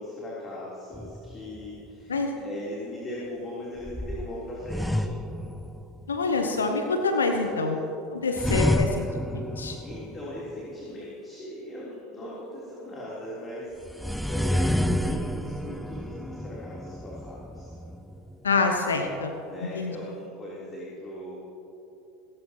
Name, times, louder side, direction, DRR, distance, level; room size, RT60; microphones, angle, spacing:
voice 1, 0.0-5.1 7.3-7.8 8.2-8.5 8.8-9.0 9.8-17.7 19.5-21.4, left 1 dB, 25° left, -7 dB, 3.6 m, -39 dB
sound 1, 0.9-1.9 3.8-6.2 8.4-10.5 13.8-18.5, equal, ahead, 0.5 m, -30 dB
voice 2, 6.1-7.8 8.1-9.1 9.3-9.8 18.4-19.3 19.6-19.9, left 3 dB, 80° left, 5 dB, 0.9 m, -26 dB
18.5 x 17.0 x 3.0 m, 3.0 s
figure-of-eight pair, 80°, 0 cm